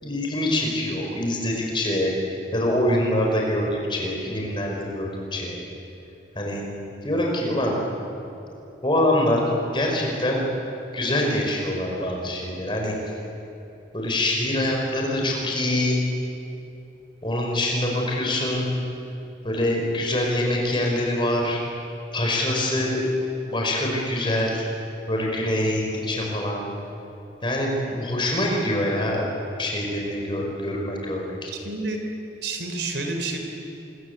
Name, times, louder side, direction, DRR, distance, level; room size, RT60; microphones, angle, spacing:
voice 1, 0.0-2.1 2.5-5.6 6.4-6.6 7.0-7.8 8.8-10.4 10.9-13.2 13.9-16.0 17.2-18.7 19.4-21.6 22.1-23.0 23.5-24.7 25.1-26.6 27.4-29.2 29.6-31.5, left 1 dB, 25° left, -1 dB, 5.2 m, -24 dB
voice 2, 31.5-32.0 32.4-33.4, right 3 dB, 65° right, 4 dB, 3.7 m, -29 dB
26.5 x 22.5 x 8.2 m, 2.8 s
head